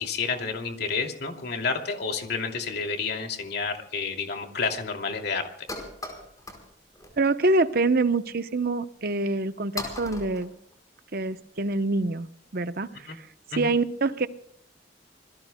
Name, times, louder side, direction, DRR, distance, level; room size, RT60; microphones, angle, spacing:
voice 1, 0.0-5.5 13.1-13.2 13.5-13.7, left 4 dB, 60° left, 3 dB, 2.7 m, -30 dB
sound 1, 4.3-4.4 4.6-4.8 5.1-5.2 5.4-6.7 6.9-7.3 7.7-7.9 8.6-8.7 9.3-9.4 9.8-11.3, left 2 dB, 20° left, 4.8 m, -38 dB
voice 2, 7.2-10.5 11.1-12.3 12.5-13.3 13.5-14.3, right 3 dB, 55° right, 11 dB, 0.9 m, -25 dB
27.0 x 21.0 x 2.3 m, 0.67 s
head